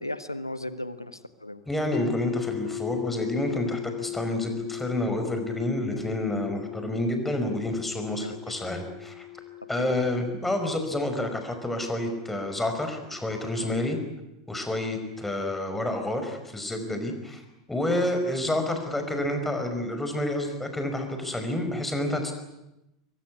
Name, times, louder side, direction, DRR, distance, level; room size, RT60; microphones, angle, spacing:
voice 1, 0.0-1.6 8.2-8.4 9.8-9.9 13.6-13.9 15.0-15.2, left 1 dB, 90° left, 12 dB, 1.5 m, -36 dB
voice 2, 1.7-9.3 9.7-14.0 14.5-17.4 17.7-22.3, left 1 dB, 5° left, 6 dB, 5.4 m, -29 dB
sound 1, 1.9-13.9, left 15 dB, 35° left, 1.2 m, -38 dB
23.0 x 23.0 x 9.7 m, 0.93 s
figure-of-eight pair, 85°, 2 cm